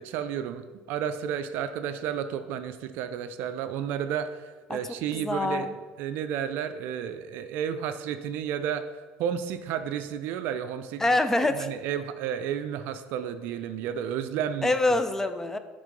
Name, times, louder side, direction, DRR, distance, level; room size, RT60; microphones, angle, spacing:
voice 1, 0.0-8.9 9.2-11.0 11.5-14.7, right 8 dB, 65° right, 10 dB, 0.4 m, -32 dB
voice 2, 5.1-5.7 11.0-11.7 14.6-15.6, left 2 dB, 10° left, 10 dB, 0.5 m, -25 dB
6.6 x 3.7 x 5.2 m, 1.4 s
supercardioid pair, 105°, 4 cm